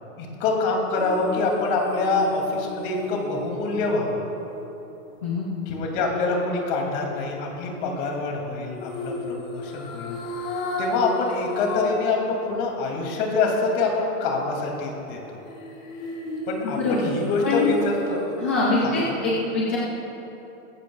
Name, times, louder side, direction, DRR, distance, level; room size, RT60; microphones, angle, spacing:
voice 1, 0.2-4.2 5.7-10.2 10.8-15.4 16.5-18.2 18.8-19.4, left 3 dB, 35° left, 0 dB, 2.6 m, -25 dB
sound 1, 1.0-5.2 8.8-12.1 12.5-12.6 15.4-18.3 18.7-18.8, left 2 dB, 70° left, 3.2 m, -35 dB
voice 2, 18.4-19.8, left 3 dB, 10° left, -6 dB, 0.3 m, -23 dB
19.0 x 15.5 x 2.3 m, 3.0 s
hypercardioid pair, 155°, 42 cm